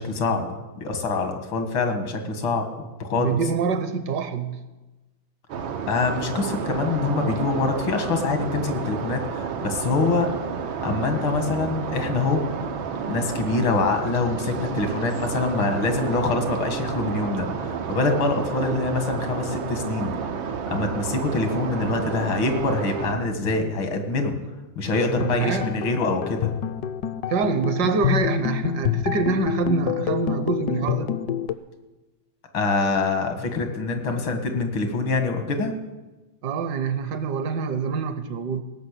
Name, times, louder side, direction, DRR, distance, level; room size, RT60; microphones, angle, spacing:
voice 1, 0.0-3.4 5.9-10.3 10.8-12.4 13.1-20.1 20.7-24.4 24.8-26.5 32.5-35.7, left 3 dB, 90° left, 5 dB, 2.4 m, -25 dB
voice 2, 3.1-4.6 18.5-18.8 25.2-25.7 27.3-31.1 36.4-38.6, right 5 dB, 65° right, 10 dB, 1.3 m, -26 dB
sound 1, 5.5-23.1, right 6 dB, 90° right, 1.8 m, -30 dB
sound 2, 24.9-31.5, left 10 dB, 70° left, 1.0 m, -27 dB
17.0 x 6.4 x 8.2 m, 1.1 s
omnidirectional pair, 2.1 m